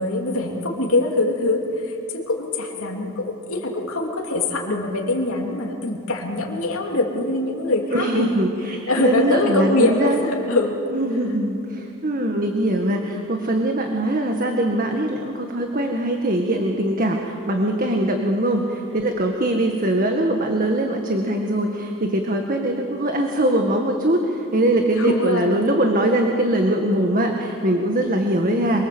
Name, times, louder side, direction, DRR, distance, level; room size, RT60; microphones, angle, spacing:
voice 1, 0.0-8.2 8.9-10.8 24.9-25.6, left 2 dB, 75° left, -1 dB, 3.3 m, -23 dB
voice 2, 7.9-10.2 10.9-28.8, right 1 dB, 40° right, 3 dB, 1.8 m, -22 dB
27.5 x 24.0 x 8.0 m, 2.7 s
head